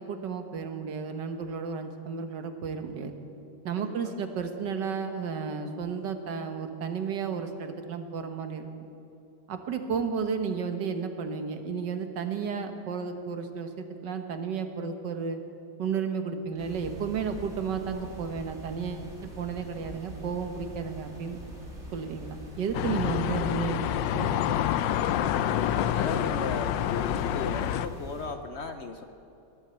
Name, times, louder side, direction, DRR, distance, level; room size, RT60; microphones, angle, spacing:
voice 1, 0.0-3.1 3.7-8.7 9.5-15.4 15.8-21.4 21.9-24.4, right 6 dB, 75° right, 7 dB, 1.7 m, -33 dB
voice 2, 3.8-4.2 25.4-29.0, left 4 dB, 60° left, 7 dB, 0.7 m, -36 dB
sound 1, 16.6-28.3, right 2 dB, 40° right, 3.0 m, -44 dB
sound 2, 22.7-27.9, left 11 dB, 85° left, 1.3 m, -27 dB
20.0 x 8.3 x 7.9 m, 2.8 s
omnidirectional pair, 1.9 m